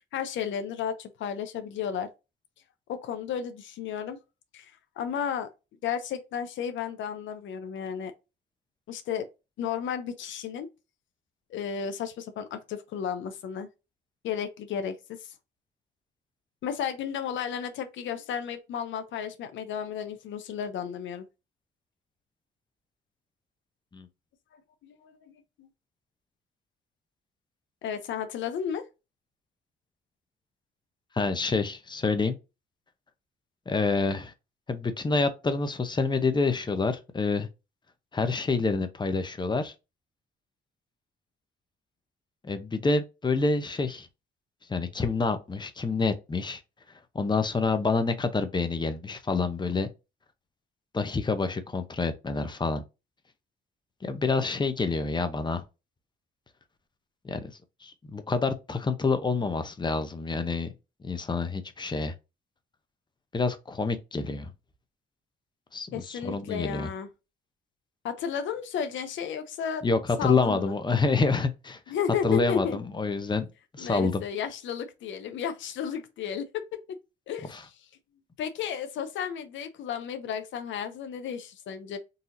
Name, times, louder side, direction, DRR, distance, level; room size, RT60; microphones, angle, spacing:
voice 1, 0.1-2.1 2.9-4.2 4.5-5.5 5.8-8.1 8.9-9.3 9.6-10.7 11.5-13.7 14.2-15.3 16.6-21.2 24.8-25.7 27.8-28.9 65.9-67.1 68.0-69.9 70.2-70.7 71.9-72.8 73.8-77.0 77.3-77.9 78.4-82.0, left 8 dB, 75° left, 0.6 m, -33 dB
voice 2, 31.1-32.4 33.7-34.3 34.7-37.5 38.1-39.7 42.4-44.1 44.7-46.6 47.1-49.9 50.9-52.8 54.0-55.6 57.2-57.5 57.8-60.7 61.0-62.1 63.3-64.5 65.7-66.9 69.8-71.8 72.2-73.5 73.7-74.2 77.5-77.6, left 4 dB, 20° left, 0.7 m, -27 dB
4.0 x 2.8 x 2.5 m
cardioid pair, 90°, 20 cm